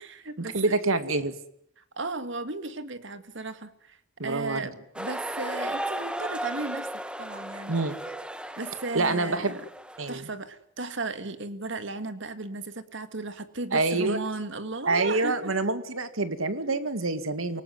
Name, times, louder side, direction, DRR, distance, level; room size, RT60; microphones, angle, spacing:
voice 1, 0.0-0.7 1.8-4.0 4.2-6.9 7.2-7.7 8.6-9.7 10.1-15.5, right 3 dB, 65° right, 11 dB, 2.0 m, -35 dB
voice 2, 0.5-1.3 4.2-4.7 7.7-8.0 8.9-9.6 10.0-10.3 13.7-14.2 14.9-17.6, right 3 dB, 85° right, 11 dB, 2.3 m, -26 dB
sound 1, 4.9-10.2, right 1 dB, 5° right, 1.2 m, -35 dB
28.0 x 19.0 x 9.4 m, 0.74 s
head